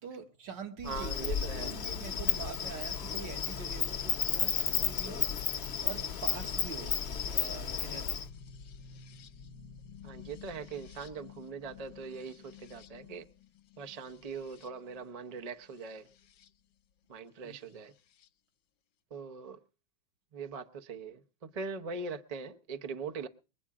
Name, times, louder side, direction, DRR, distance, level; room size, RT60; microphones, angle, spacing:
voice 1, 0.0-5.3 5.8-8.3 17.4-17.6, right 6 dB, 70° right, 2.0 m, -45 dB
sound 1, 0.8-16.5 17.7-18.3, left 5 dB, 75° left, 1.5 m, -50 dB
Insect, 0.8-8.2, left 7 dB, 45° left, 0.9 m, -33 dB
voice 2, 0.8-1.8 3.7-3.8 10.0-13.3 13.8-16.1 17.1-17.9 19.1-19.6 20.3-23.3, right 5 dB, 50° right, 0.4 m, -41 dB
22.5 x 8.3 x 4.8 m
omnidirectional pair, 2.1 m